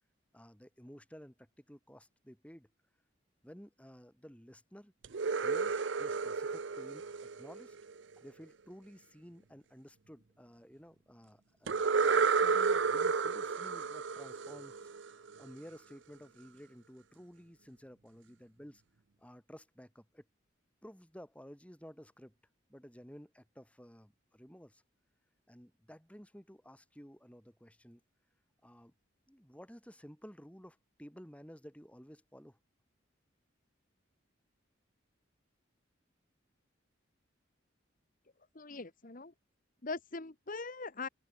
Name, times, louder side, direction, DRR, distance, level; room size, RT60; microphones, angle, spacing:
voice 1, 0.3-2.7 3.4-4.9 5.3-7.1 7.4-7.8 8.2-18.8 19.2-20.2 20.8-22.4 22.7-24.8 25.5-28.0 28.6-28.9 29.3-32.6, equal, 5° left, 6.1 m, -53 dB
sound 1, 5.0-8.0 11.7-15.4, right 5 dB, 65° right, 0.6 m, -31 dB
voice 2, 38.5-39.3 39.8-41.1, left 3 dB, 45° left, 1.3 m, -41 dB
open air
head